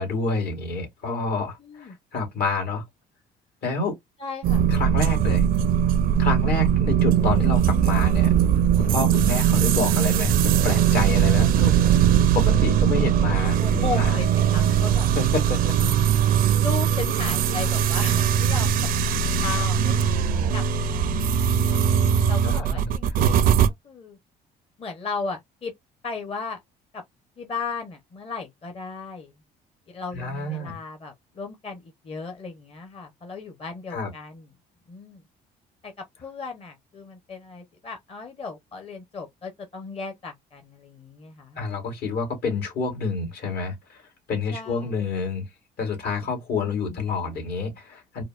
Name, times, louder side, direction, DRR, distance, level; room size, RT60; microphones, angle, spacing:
voice 1, 0.0-2.8 3.6-3.9 4.7-5.4 6.2-8.3 8.8-14.2 15.2-15.7 22.4-23.3 30.1-30.8 33.9-34.1 41.6-44.0 44.3-45.4 45.8-48.2, left 3 dB, 70° left, 2.0 m, -28 dB
voice 2, 1.6-2.0 4.2-4.6 13.6-15.1 15.8-16.0 16.6-20.3 20.5-21.8 22.3-23.6 23.8-24.2 24.8-25.7 26.0-26.6 26.9-27.0 27.4-29.3 29.9-34.5 34.9-35.2 35.8-41.6 44.5-45.0, left 4 dB, 35° left, 0.8 m, -36 dB
sound 1, 4.4-23.7, right 9 dB, 60° right, 0.4 m, -20 dB
4.7 x 2.1 x 2.4 m
cardioid pair, 110°, 17 cm